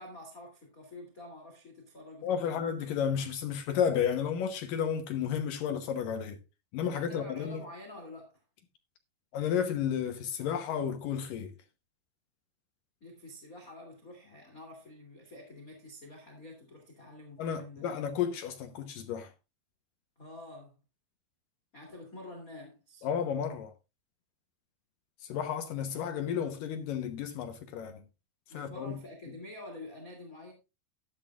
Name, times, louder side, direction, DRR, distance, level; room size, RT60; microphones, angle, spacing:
voice 1, 0.0-2.6 6.9-8.4 13.0-17.9 20.2-20.8 21.7-23.1 28.5-30.5, left 2 dB, 25° left, 2.5 m, -48 dB
voice 2, 2.2-6.4 6.7-7.6 9.3-11.5 17.4-19.3 23.0-23.7 25.3-28.0 28.5-28.9, left 8 dB, 75° left, 2.1 m, -32 dB
12.5 x 12.5 x 2.4 m
omnidirectional pair, 5.1 m